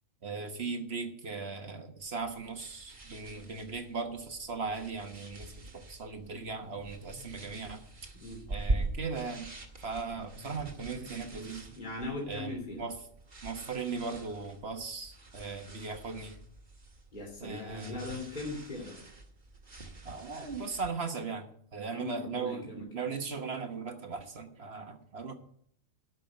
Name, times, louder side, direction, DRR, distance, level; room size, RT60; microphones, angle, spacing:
voice 1, 0.2-7.8 8.5-9.5 9.8-11.8 12.3-13.0 13.4-16.4 17.4-18.1 20.0-25.3, right 4 dB, 55° right, 7 dB, 1.5 m, -38 dB
sound 1, 2.0-20.9, right 2 dB, 35° right, 1.7 m, -43 dB
Breathing, 6.1-7.6 10.1-11.5, left 2 dB, 75° left, 2.2 m, -52 dB
voice 2, 11.8-12.8 17.1-19.0 21.9-22.9, left 2 dB, 35° left, -1 dB, 3.1 m, -39 dB
12.5 x 6.0 x 9.1 m, 0.66 s
omnidirectional pair, 1.4 m